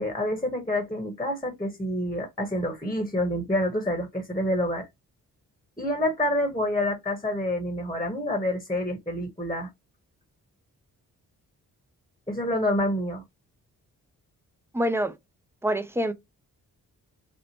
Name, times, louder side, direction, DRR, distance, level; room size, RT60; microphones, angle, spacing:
voice 1, 0.0-4.9 5.8-9.7 12.3-13.2, left 1 dB, 10° left, 1.1 m, -27 dB
voice 2, 14.7-15.1 15.6-16.1, equal, 5° right, 0.6 m, -25 dB
2.8 x 2.1 x 2.8 m
supercardioid pair, 45°, 39 cm